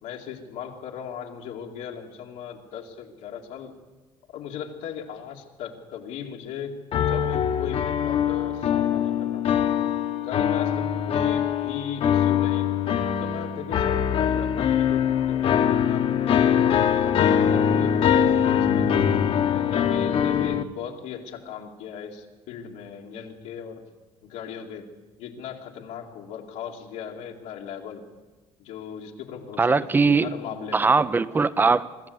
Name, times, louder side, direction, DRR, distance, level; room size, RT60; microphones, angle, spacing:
voice 1, 0.0-3.7 4.3-6.8 7.1-9.7 10.2-12.7 13.0-16.0 16.6-18.9 19.5-23.8 24.2-28.0 28.6-30.9, left 8 dB, 85° left, 0 dB, 2.5 m, -37 dB
sound 1, 6.9-20.6, left 8 dB, 50° left, 1.3 m, -23 dB
voice 2, 29.6-30.3 30.7-32.1, right 4 dB, 15° right, 16 dB, 0.6 m, -21 dB
24.0 x 14.0 x 8.0 m, 1.2 s
cardioid pair, 145°, 12 cm